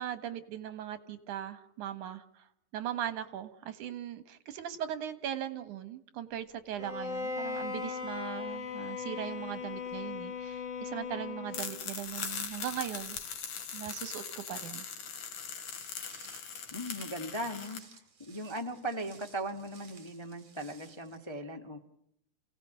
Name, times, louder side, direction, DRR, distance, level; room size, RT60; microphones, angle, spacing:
voice 1, 0.0-2.4 2.7-13.2 13.7-14.9, right 10 dB, 85° right, 12 dB, 3.1 m, -39 dB
Bowed string instrument, 6.8-11.9, left 5 dB, 55° left, 4.3 m, -38 dB
sound 1, 11.5-17.8, left 7 dB, 80° left, 3.6 m, -40 dB
Walk footsteps, 15.7-21.2, right 5 dB, 60° right, 4.6 m, -57 dB
voice 2, 16.7-17.8 18.2-21.8, right 1 dB, 15° left, 4 dB, 1.2 m, -38 dB
29.0 x 17.5 x 9.0 m, 0.75 s
omnidirectional pair, 3.4 m